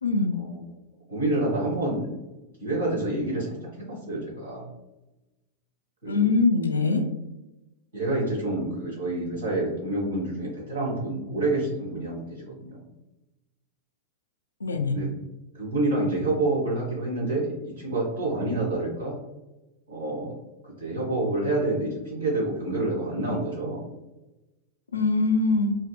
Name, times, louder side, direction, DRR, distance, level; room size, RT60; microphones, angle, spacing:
voice 1, 0.0-0.4 6.1-7.0 14.6-15.0 24.9-25.8, left 3 dB, 80° left, 5 dB, 0.4 m, -22 dB
voice 2, 1.1-2.1 2.6-4.7 6.0-6.3 7.9-12.8 14.9-15.1 15.5-19.2 19.9-20.3 20.6-23.8, right 2 dB, 75° right, -3 dB, 1.5 m, -28 dB
4.4 x 2.0 x 2.3 m, 1.0 s
figure-of-eight pair, 90°, 0 cm